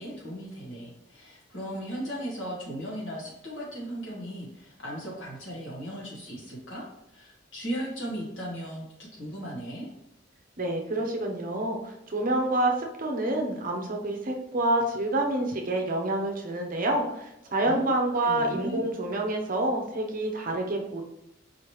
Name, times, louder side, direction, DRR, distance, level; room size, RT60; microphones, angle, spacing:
voice 1, 0.0-6.9 7.1-8.8 9.1-9.9 17.6-17.9 18.2-18.8, equal, 70° left, -4 dB, 1.6 m, -36 dB
voice 2, 10.6-21.0, right 1 dB, 45° right, 2 dB, 0.7 m, -28 dB
4.8 x 3.2 x 3.1 m, 0.83 s
head